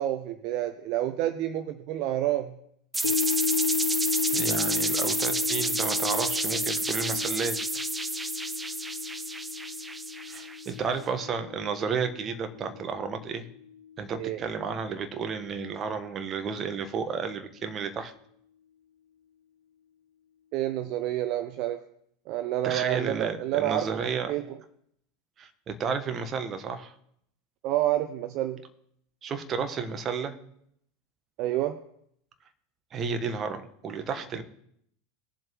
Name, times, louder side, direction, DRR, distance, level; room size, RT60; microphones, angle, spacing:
voice 1, 0.0-2.6 14.2-14.4 20.5-21.8 22.3-24.0 24.3-24.6 27.6-28.7 31.4-31.8, right 13 dB, 50° right, 11 dB, 0.7 m, -29 dB
sound 1, 2.9-10.7, right 2 dB, 10° right, 0.7 m, -30 dB
sound 2, 3.0-13.4 13.8-13.9, left 8 dB, 75° left, 0.9 m, -33 dB
voice 2, 4.3-7.6 10.3-13.5 14.0-18.1 22.6-24.3 25.4-26.9 29.2-30.3 32.9-34.4, right 5 dB, 30° right, 8 dB, 1.4 m, -32 dB
20.0 x 7.5 x 3.2 m, 0.71 s
figure-of-eight pair, 80°, 0 cm